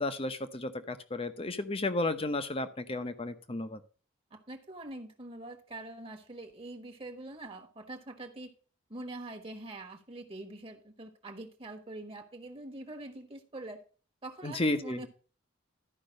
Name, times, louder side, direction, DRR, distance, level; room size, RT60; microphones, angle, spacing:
voice 1, 0.0-3.8 14.4-15.0, left 2 dB, 30° left, 10 dB, 0.8 m, -33 dB
voice 2, 4.3-8.5 8.9-13.8 14.2-15.1, right 2 dB, 30° right, 4 dB, 1.3 m, -44 dB
12.0 x 5.3 x 5.2 m, 0.38 s
head